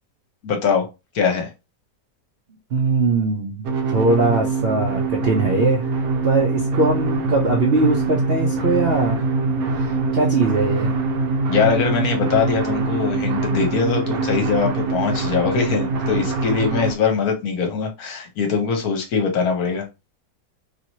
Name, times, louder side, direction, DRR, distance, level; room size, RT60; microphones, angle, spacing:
voice 1, 0.4-0.9 1.1-1.5 11.5-19.9, left 5 dB, 65° left, 1.2 m, -22 dB
voice 2, 2.7-5.9 6.2-9.2 9.7-10.9, right 3 dB, 80° right, 0.5 m, -21 dB
sound 1, 3.6-16.9, right 3 dB, 65° right, 1.0 m, -23 dB
3.0 x 2.9 x 2.7 m
omnidirectional pair, 1.9 m